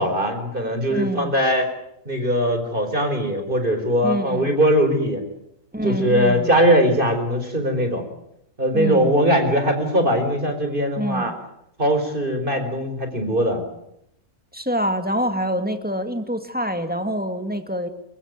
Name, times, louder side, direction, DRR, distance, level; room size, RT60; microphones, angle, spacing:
voice 1, 0.0-1.6 2.0-5.2 5.8-8.0 8.6-11.3 11.8-13.6, equal, 40° right, 6 dB, 4.8 m, -20 dB
voice 2, 0.9-1.3 4.0-4.5 5.7-6.5 8.7-9.1 11.0-11.3 14.5-17.9, equal, 5° right, 7 dB, 2.2 m, -26 dB
28.0 x 16.5 x 9.4 m, 0.79 s
omnidirectional pair, 1.4 m